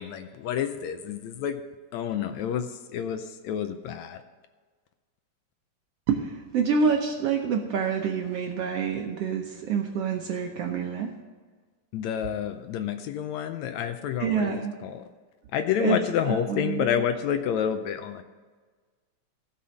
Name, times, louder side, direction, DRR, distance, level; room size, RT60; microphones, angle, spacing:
voice 1, 0.0-1.6 1.9-4.2 11.9-15.0 15.5-18.2, left 9 dB, 80° left, 8 dB, 1.8 m, -29 dB
voice 2, 6.1-11.1 14.2-14.7 15.8-16.0 16.2-16.8, right 6 dB, 70° right, 3 dB, 1.5 m, -27 dB
15.5 x 5.6 x 6.4 m, 1.4 s
omnidirectional pair, 3.6 m